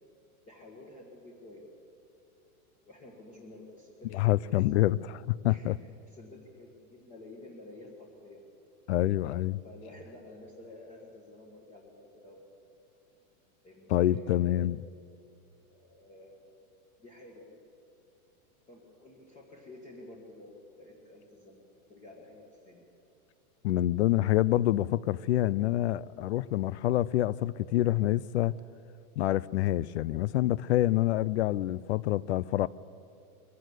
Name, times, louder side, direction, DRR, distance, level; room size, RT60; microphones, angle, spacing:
voice 1, 0.4-1.7 2.8-4.8 5.5-8.5 9.6-12.4 13.6-14.6 15.7-16.5 17.0-17.6 18.7-22.8, left 2 dB, 15° left, 1.7 m, -51 dB
voice 2, 4.1-5.8 8.9-9.6 13.9-14.8 23.6-28.6 29.2-32.7, left 14 dB, 50° left, 0.4 m, -27 dB
22.5 x 15.5 x 8.1 m
supercardioid pair, 170°, 44 cm